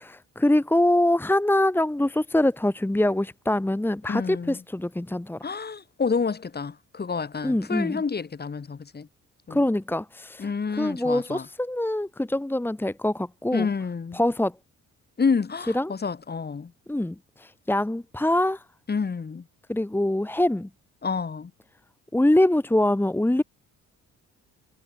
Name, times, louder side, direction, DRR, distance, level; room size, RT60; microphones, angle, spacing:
voice 1, 0.0-5.4 7.4-8.0 9.5-10.5 10.8-13.7 14.1-14.5 15.7-15.9 16.9-18.6 19.7-20.7 22.1-23.4, left 1 dB, 5° left, 1.6 m, -24 dB
voice 2, 4.1-4.6 5.4-9.1 9.5-9.6 10.4-11.5 13.5-14.2 15.2-16.7 18.9-19.4 21.0-21.5, left 5 dB, 35° left, 3.0 m, -29 dB
cardioid pair, 90°, 30 cm